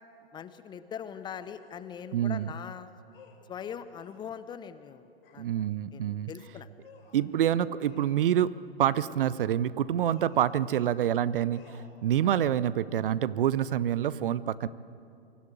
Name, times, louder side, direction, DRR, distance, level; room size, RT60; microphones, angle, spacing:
voice 1, 0.3-2.9 3.5-5.4 5.9-6.7 12.2-12.3, left 8 dB, 15° left, 13 dB, 0.6 m, -41 dB
sound 1, 1.5-1.8 3.1-4.3 5.2-5.5 6.8-7.3 7.8-8.3 8.9-9.3 10.0-10.6 11.5-11.9, left 6 dB, 65° left, 4.6 m, -56 dB
voice 2, 2.1-2.5 5.4-6.3 7.1-14.7, right 10 dB, 60° right, 17 dB, 0.7 m, -27 dB
23.5 x 13.0 x 9.2 m, 2.5 s
figure-of-eight pair, 115°, 31 cm